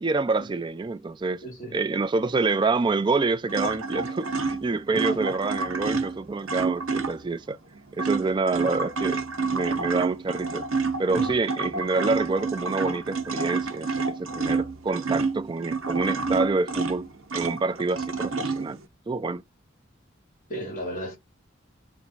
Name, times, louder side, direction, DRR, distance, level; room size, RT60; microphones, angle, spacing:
voice 1, 0.0-1.5 1.7-7.6 8.0-9.2 9.5-10.6 11.0-17.1 17.3-18.8 19.1-19.4, right 3 dB, 25° right, 0.3 m, -27 dB
voice 2, 1.4-1.8 4.9-5.2 11.1-11.4 20.5-21.2, equal, 40° left, 1.8 m, -34 dB
sound 1, 3.5-7.4 7.7-18.9, right 4 dB, 90° right, 0.7 m, -29 dB
3.5 x 3.1 x 4.0 m
head